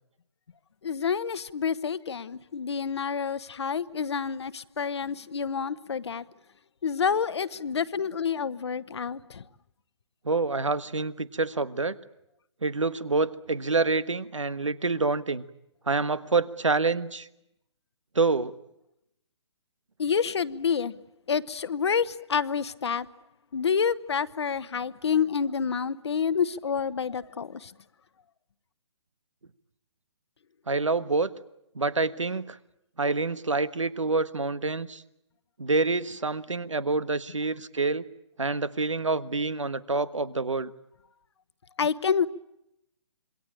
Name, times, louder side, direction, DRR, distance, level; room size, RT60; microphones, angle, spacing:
voice 1, 0.8-6.2 6.8-9.4 20.0-21.0 21.3-23.1 23.5-27.7 41.8-42.3, left 6 dB, 65° left, 1.2 m, -28 dB
voice 2, 10.2-12.0 12.6-15.4 15.9-17.3 18.1-18.5 30.7-31.3 31.7-32.6 33.0-35.0 35.6-38.0 38.4-40.7, right 3 dB, 85° right, 1.5 m, -27 dB
27.0 x 22.5 x 8.8 m
figure-of-eight pair, 140°, 15 cm